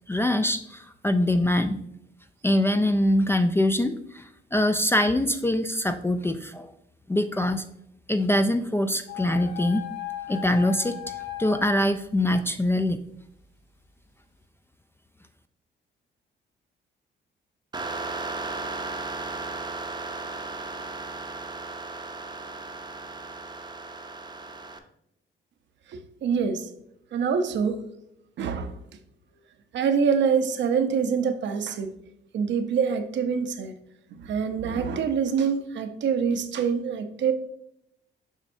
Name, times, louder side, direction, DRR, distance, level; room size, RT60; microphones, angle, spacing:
voice 1, 0.1-1.8 2.4-6.7 7.1-7.6 8.1-9.9 10.3-11.1 11.4-13.0, left 1 dB, 10° left, 0.3 m, -24 dB
sound 1, 9.1-11.8, left 13 dB, 70° left, 1.2 m, -36 dB
sound 2, 17.7-24.8, right 3 dB, 20° right, 0.7 m, -35 dB
voice 2, 25.9-26.7 27.1-27.8 28.4-28.8 29.7-31.9 32.3-33.7 34.2-37.3, right 6 dB, 65° right, 0.7 m, -25 dB
7.3 x 5.1 x 2.6 m
cardioid pair, 90°, 20 cm